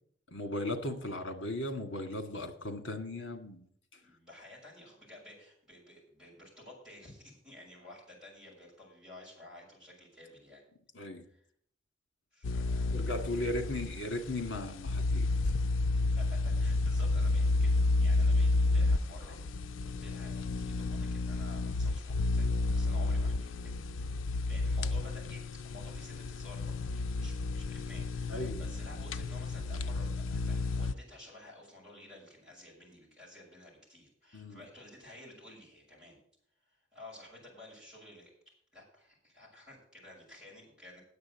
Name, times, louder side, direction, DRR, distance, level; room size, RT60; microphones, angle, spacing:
voice 1, 0.3-3.6 10.9-11.2 12.9-15.5 28.3-28.6 34.3-34.6, left 1 dB, 70° left, 6 dB, 1.8 m, -37 dB
voice 2, 4.0-10.6 11.3-11.5 12.3-13.2 15.9-23.7 24.3-36.2 36.6-38.3 38.7-41.0, left 1 dB, 5° right, -6 dB, 6.5 m, -53 dB
sound 1, 12.4-30.9, left 3 dB, 90° left, 0.4 m, -31 dB
9.6 x 7.5 x 8.1 m, 0.65 s
head